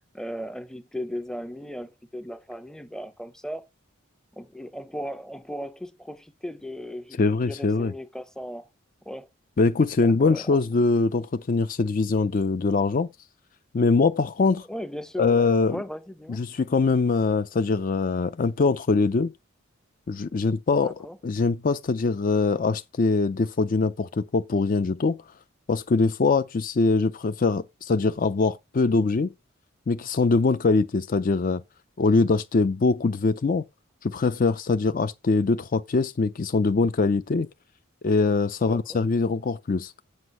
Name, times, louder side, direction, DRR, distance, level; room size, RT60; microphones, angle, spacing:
voice 1, 0.1-3.7 4.3-8.7 9.1-9.3 10.0-10.6 14.7-16.4 20.7-21.2 38.6-39.0, equal, 5° left, 0.6 m, -37 dB
voice 2, 7.2-7.9 9.6-13.1 13.7-14.7 15.2-15.8 16.3-19.3 20.1-20.9 21.2-25.2 25.7-29.3 29.9-31.6 32.0-33.6 34.0-37.5 38.0-39.9, left 4 dB, 40° left, 0.4 m, -23 dB
8.1 x 5.1 x 5.4 m
head